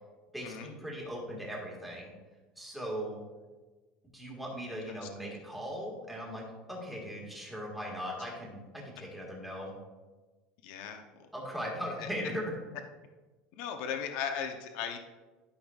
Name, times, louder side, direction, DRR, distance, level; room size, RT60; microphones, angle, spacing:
voice 1, 0.3-2.1 2.5-3.2 4.1-6.4 6.7-9.8 11.3-12.6, equal, 5° right, -3 dB, 1.7 m, -39 dB
voice 2, 10.6-11.3 12.0-12.1 13.6-15.0, left 7 dB, 60° left, 5 dB, 0.8 m, -37 dB
12.0 x 5.7 x 2.4 m, 1.2 s
cardioid pair, 160°, 3 cm